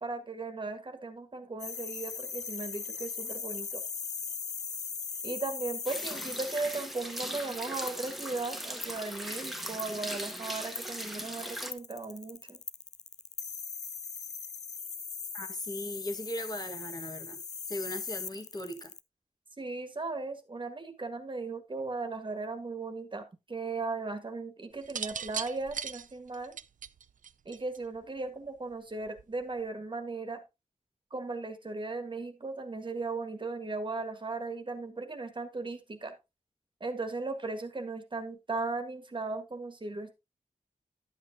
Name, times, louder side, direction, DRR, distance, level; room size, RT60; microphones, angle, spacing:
voice 1, 0.0-3.8 5.2-12.6 19.6-26.6 27.5-30.4 31.1-36.1 36.8-40.1, right 3 dB, 40° right, 1.6 m, -37 dB
sound 1, 1.6-19.0, left 6 dB, 60° left, 0.6 m, -40 dB
sound 2, 5.9-11.7, equal, ahead, 1.3 m, -39 dB
voice 2, 15.3-17.4 17.7-18.9, left 1 dB, 30° left, 1.4 m, -38 dB
sound 3, 24.8-28.0 29.1-29.4, right 7 dB, 85° right, 0.5 m, -38 dB
11.0 x 8.2 x 2.8 m
wide cardioid pair, 120°, 13 cm